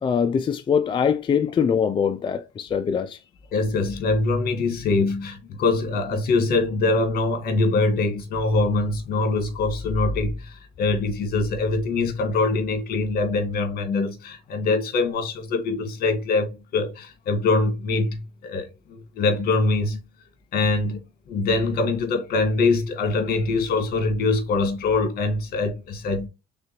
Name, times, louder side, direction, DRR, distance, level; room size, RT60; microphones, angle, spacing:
voice 1, 0.0-3.2, left 7 dB, 30° left, 0.4 m, -23 dB
voice 2, 3.5-20.0 20.5-21.0 21.3-26.3, left 3 dB, 65° left, 1.6 m, -23 dB
4.8 x 3.7 x 3.0 m
cardioid pair, 110°, 17 cm